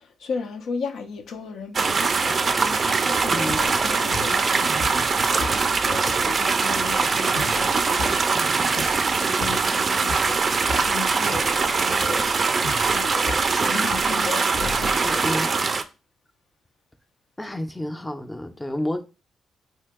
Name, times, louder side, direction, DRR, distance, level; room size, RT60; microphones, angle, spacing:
voice 1, 0.2-10.4 10.8-15.5, left 5 dB, 75° left, 0.4 m, -35 dB
sound 1, 1.7-15.8, right 4 dB, 45° right, 0.4 m, -22 dB
sound 2, 3.2-15.4, left 3 dB, 90° left, 1.2 m, -37 dB
voice 2, 3.3-3.6 9.2-9.5 15.0-15.5 17.4-19.0, left 1 dB, 15° left, 0.5 m, -30 dB
2.8 x 2.7 x 3.4 m
supercardioid pair, 65°, 0 cm